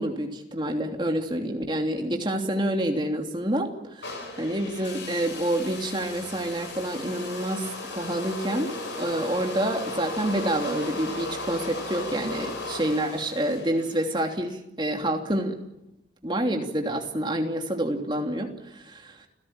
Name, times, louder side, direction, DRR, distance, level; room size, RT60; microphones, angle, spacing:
voice 1, 0.0-8.7 9.0-15.6 16.2-19.3, right 1 dB, 25° right, 3 dB, 3.0 m, -28 dB
sound 1, 4.0-14.2, left 2 dB, 85° left, 7.6 m, -36 dB
30.0 x 17.0 x 8.9 m, 0.87 s
head